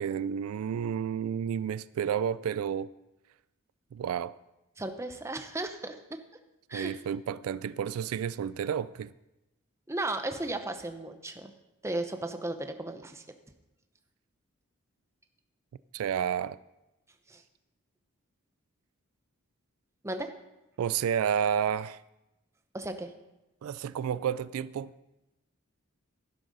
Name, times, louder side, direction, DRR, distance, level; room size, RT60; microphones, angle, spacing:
voice 1, 0.0-2.9 3.9-4.4 6.7-9.1 15.9-16.6 20.8-22.0 23.6-24.9, right 8 dB, 80° right, 0.3 m, -31 dB
voice 2, 4.8-6.2 6.7-7.0 9.9-11.5 11.8-13.2 17.3-17.4 20.0-20.3 22.7-23.1, right 2 dB, 15° right, 0.7 m, -35 dB
11.5 x 11.5 x 4.0 m
head